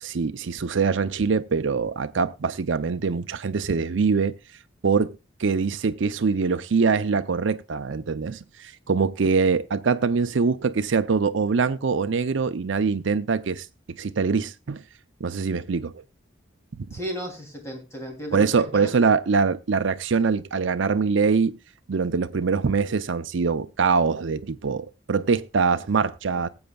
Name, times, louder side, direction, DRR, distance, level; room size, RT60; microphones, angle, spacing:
voice 1, 0.0-4.3 4.8-14.8 15.2-15.9 16.8-16.9 18.3-21.6 21.9-26.5, right 5 dB, 70° right, 0.5 m, -23 dB
voice 2, 16.9-18.9, equal, 15° left, 2.9 m, -34 dB
19.5 x 7.8 x 2.3 m
head